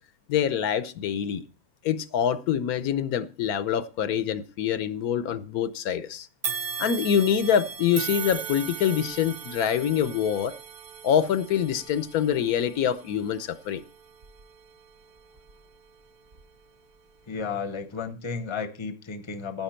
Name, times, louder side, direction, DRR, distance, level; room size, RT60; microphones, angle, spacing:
voice 1, 0.3-1.4 1.8-6.3 6.8-10.5 11.0-13.8, left 9 dB, 80° left, 1.2 m, -25 dB
sound 1, 6.4-15.7 16.3-16.4 17.4-17.5, right 7 dB, 55° right, 0.5 m, -38 dB
voice 2, 17.3-19.6, left 5 dB, 25° left, 0.8 m, -33 dB
10.5 x 9.4 x 4.4 m
omnidirectional pair, 1.5 m